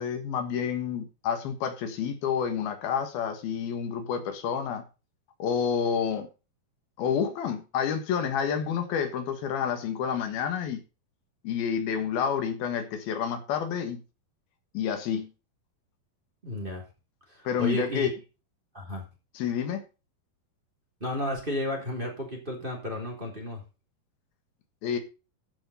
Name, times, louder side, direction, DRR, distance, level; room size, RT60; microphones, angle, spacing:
voice 1, 0.0-4.8 5.4-6.3 7.0-10.8 11.4-14.0 14.8-15.3 17.5-18.1 19.4-19.8 24.8-25.0, left 7 dB, 85° left, 7 dB, 3.4 m, -29 dB
voice 2, 16.4-16.8 17.3-18.1 18.7-19.0 21.0-23.6, left 1 dB, 15° right, 1 dB, 3.2 m, -32 dB
13.5 x 6.0 x 5.5 m, 0.31 s
omnidirectional pair, 4.3 m